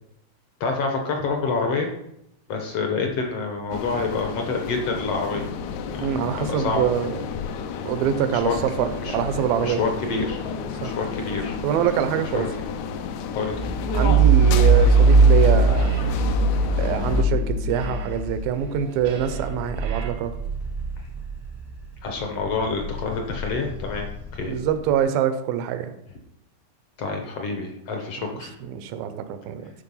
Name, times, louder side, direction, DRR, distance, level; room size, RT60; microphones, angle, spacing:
voice 1, 0.6-1.9 2.5-5.5 6.4-6.8 8.3-8.6 9.0-10.4 10.8-11.6 12.3-12.5 13.3-13.7 22.0-24.6 27.0-28.5, left 4 dB, 65° left, 3 dB, 1.5 m, -27 dB
sound 1, 3.7-17.2, left 6 dB, 85° left, 1.6 m, -31 dB
voice 2, 6.0-7.2 7.9-9.8 10.8-10.9 11.6-12.5 13.9-15.9 16.7-20.3 24.5-25.9 28.6-29.7, right 9 dB, 85° right, 10 dB, 2.6 m, -25 dB
sound 2, 13.5-21.8 22.2-24.8, right 3 dB, 20° right, 0.5 m, -21 dB
sound 3, 14.3-15.4 15.7-20.1, right 4 dB, 70° right, 1.2 m, -41 dB
13.0 x 4.6 x 5.5 m, 0.80 s
omnidirectional pair, 4.1 m